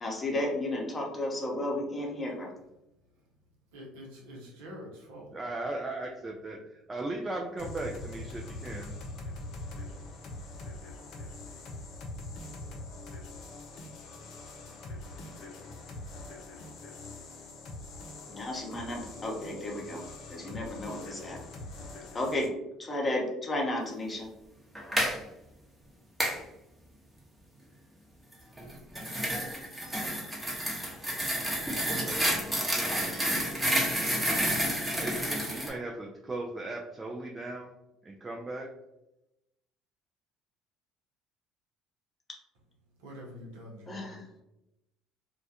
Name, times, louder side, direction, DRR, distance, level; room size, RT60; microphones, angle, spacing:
voice 1, 0.0-2.5 18.3-20.0 20.3-21.4 22.1-22.5 22.8-24.3 43.9-44.2, left 1 dB, 30° left, 0 dB, 0.8 m, -33 dB
voice 2, 3.7-5.3 43.0-44.2, equal, 75° right, -1 dB, 0.7 m, -46 dB
voice 3, 5.3-8.9 32.0-33.3 35.0-37.7 38.0-38.7, right 2 dB, 25° right, 0 dB, 0.4 m, -38 dB
sound 1, 7.6-22.5, left 2 dB, 60° left, 0.5 m, -43 dB
sound 2, 24.8-25.2 26.2-26.4 28.6-35.7, equal, 10° right, 0.8 m, -30 dB
2.2 x 2.2 x 2.7 m, 0.89 s
hypercardioid pair, 65°, 0 cm